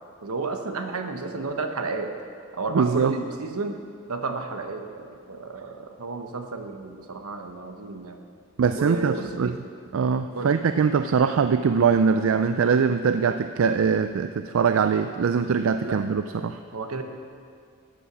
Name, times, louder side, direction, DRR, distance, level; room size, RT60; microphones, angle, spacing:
voice 1, 0.2-2.1 2.5-3.8 4.1-8.2 8.7-9.6 10.3-10.6 15.8-16.0 16.7-17.0, right 3 dB, 80° right, 5 dB, 1.0 m, -32 dB
voice 2, 2.7-3.1 8.6-9.5 9.9-16.6, right 6 dB, 60° right, 9 dB, 0.4 m, -22 dB
13.0 x 8.5 x 6.0 m, 2.3 s
head